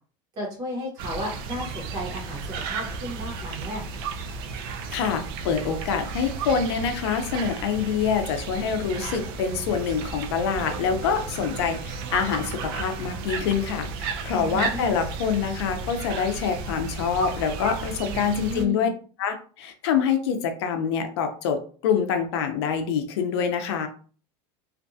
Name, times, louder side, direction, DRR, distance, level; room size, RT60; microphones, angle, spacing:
voice 1, 0.4-3.8 14.4-14.8 18.1-18.9, right 1 dB, 25° right, -1 dB, 1.0 m, -34 dB
sound 1, 1.0-18.7, right 4 dB, 60° right, 0.4 m, -34 dB
voice 2, 4.9-18.9 19.2-23.9, left 6 dB, 90° left, 6 dB, 0.5 m, -26 dB
2.5 x 2.2 x 2.6 m, 0.41 s
supercardioid pair, 180°, 13 cm